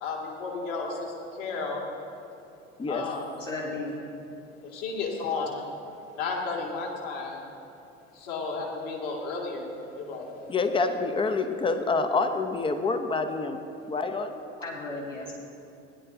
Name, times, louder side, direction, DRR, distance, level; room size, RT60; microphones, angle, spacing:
voice 1, 0.0-1.8 2.9-3.3 4.6-5.8 6.2-7.4 8.1-10.3, left 4 dB, 55° left, -1 dB, 2.2 m, -33 dB
voice 2, 2.8-3.1 10.5-13.6 13.9-14.4, left 3 dB, 15° left, 8 dB, 0.7 m, -27 dB
voice 3, 3.4-4.0 14.6-15.3, left 2 dB, 90° left, -5 dB, 1.9 m, -34 dB
16.0 x 10.5 x 2.7 m, 2.8 s
figure-of-eight pair, 65°, 37 cm